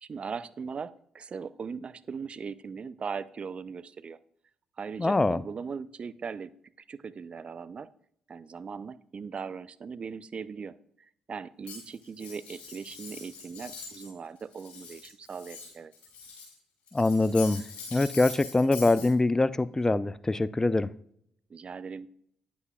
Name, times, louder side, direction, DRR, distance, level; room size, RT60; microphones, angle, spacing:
voice 1, 0.0-4.2 4.8-6.5 6.9-7.9 8.3-15.9 21.5-22.1, right 5 dB, 45° right, 0.4 m, -39 dB
voice 2, 5.0-5.4 16.9-17.6 17.9-20.9, left 2 dB, 20° left, 0.4 m, -24 dB
Cutlery silverware, 11.6-14.1 14.4-16.5 16.9-19.1, left 5 dB, 60° left, 3.3 m, -43 dB
9.3 x 8.1 x 2.3 m
hypercardioid pair, 45°, 3 cm